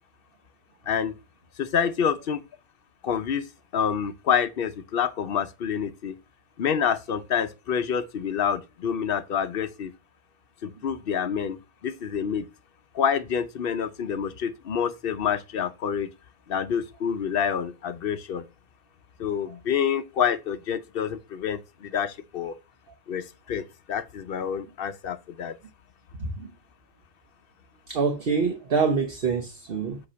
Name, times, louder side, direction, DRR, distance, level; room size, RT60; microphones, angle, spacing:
voice 1, 0.9-1.2 1.6-2.4 3.0-3.5 3.7-6.1 6.6-9.9 10.6-11.6 11.8-12.5 12.9-16.1 16.5-18.4 19.2-22.6 23.1-25.6, left 7 dB, 55° left, 0.8 m, -27 dB
voice 2, 26.2-26.5 27.9-30.0, right 5 dB, 55° right, 1.1 m, -26 dB
8.3 x 2.9 x 6.2 m
omnidirectional pair, 1.2 m